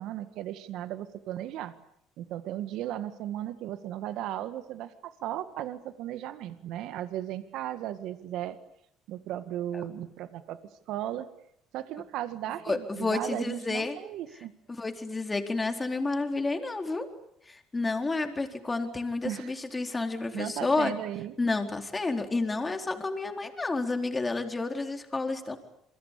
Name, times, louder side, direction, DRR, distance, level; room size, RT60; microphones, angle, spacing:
voice 1, 0.0-1.7 2.2-8.6 9.1-10.6 10.9-11.3 11.7-14.5 19.2-19.5 20.3-21.3, right 12 dB, 75° right, 11 dB, 1.9 m, -36 dB
voice 2, 12.6-14.0 14.8-17.1 17.5-20.9 21.4-25.6, left 3 dB, 20° left, 5 dB, 4.2 m, -30 dB
27.5 x 24.0 x 8.6 m, 0.73 s
cardioid pair, 100°, 0 cm